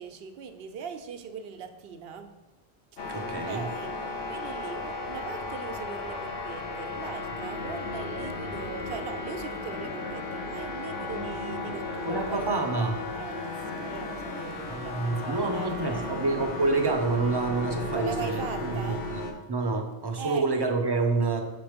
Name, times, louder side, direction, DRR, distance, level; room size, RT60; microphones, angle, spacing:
voice 1, 0.0-2.4 3.2-12.5 13.1-16.2 17.9-19.1 20.2-20.5, right 6 dB, 70° right, 8 dB, 0.8 m, -40 dB
sound 1, 3.0-19.3, left 3 dB, 60° left, 1.0 m, -35 dB
voice 2, 3.1-3.6 11.0-11.8 12.1-13.0 14.7-19.2 19.5-21.4, right 3 dB, 25° right, 3 dB, 0.6 m, -28 dB
sound 2, 8.1-17.9, left 1 dB, 15° left, 0.4 m, -47 dB
6.0 x 3.9 x 5.0 m, 1.1 s
omnidirectional pair, 1.1 m